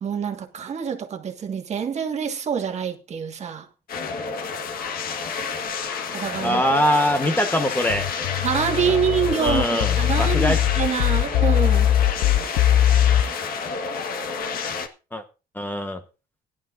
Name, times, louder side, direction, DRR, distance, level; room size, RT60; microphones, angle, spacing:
voice 1, 0.0-3.7 6.1-6.6 8.4-11.9, right 7 dB, 40° right, 1.7 m, -26 dB
sound 1, 3.9-14.9, left 5 dB, 60° left, 1.5 m, -30 dB
voice 2, 6.4-8.1 9.4-10.6 15.1-15.2 15.5-16.0, equal, 10° left, 1.1 m, -22 dB
sound 2, 7.9-13.2, left 12 dB, 85° left, 0.6 m, -20 dB
17.0 x 11.0 x 2.5 m
cardioid pair, 110°, 17 cm